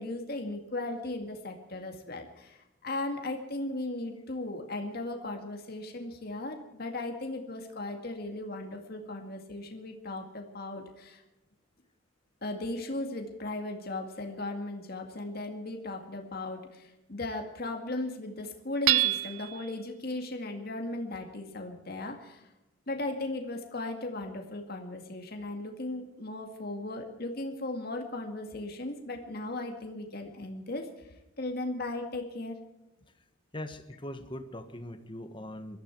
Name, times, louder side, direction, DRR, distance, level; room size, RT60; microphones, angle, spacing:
voice 1, 0.0-11.2 12.4-22.5 22.9-31.1 31.4-32.6, left 2 dB, 50° left, 3 dB, 2.1 m, -37 dB
Hammer / Chink clink, 18.9-19.7, right 15 dB, 85° right, 0.8 m, -26 dB
voice 2, 33.5-35.8, left 1 dB, 25° left, 9 dB, 1.4 m, -41 dB
21.0 x 13.5 x 4.6 m, 0.92 s
head